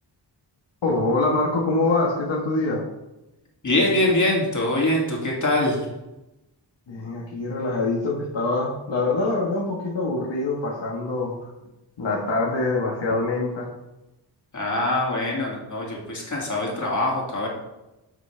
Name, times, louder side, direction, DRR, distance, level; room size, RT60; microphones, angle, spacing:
voice 1, 0.8-2.8 6.9-11.3 12.0-13.7, left 2 dB, 80° left, -3 dB, 1.6 m, -24 dB
voice 2, 3.6-5.9 14.5-17.5, left 1 dB, 40° left, -2 dB, 2.5 m, -23 dB
11.0 x 6.1 x 3.4 m, 0.97 s
wide cardioid pair, 95°, 43 cm